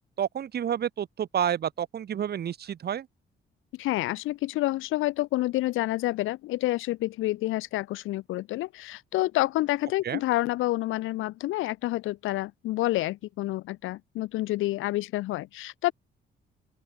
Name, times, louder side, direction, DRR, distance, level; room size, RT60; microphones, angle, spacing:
voice 1, 0.2-3.1 10.0-10.2, right 9 dB, 55° right, 1.2 m, -29 dB
voice 2, 3.7-15.9, left 17 dB, 90° left, 1.0 m, -28 dB
open air
cardioid pair, 90°, 20 cm